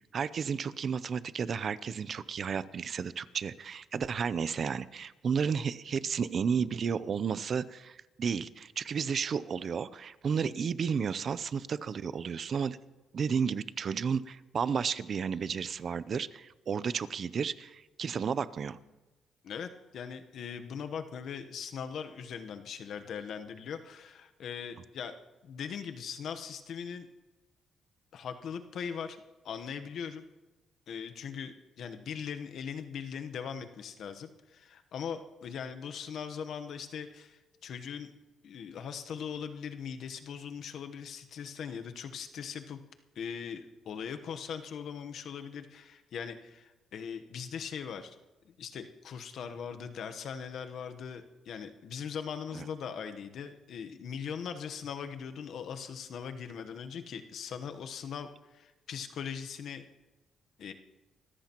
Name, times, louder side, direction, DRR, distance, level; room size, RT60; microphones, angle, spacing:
voice 1, 0.1-12.8 13.1-18.8 52.5-52.6, right 6 dB, 50° right, 17 dB, 0.6 m, -32 dB
voice 2, 19.4-25.2 25.4-27.1 28.1-29.2 29.4-30.2 30.9-38.1 38.4-42.8 43.1-48.2 48.4-59.8 60.6-60.7, left 7 dB, 70° left, 8 dB, 1.0 m, -40 dB
25.5 x 14.0 x 3.0 m, 1.1 s
cardioid pair, 90°, 0 cm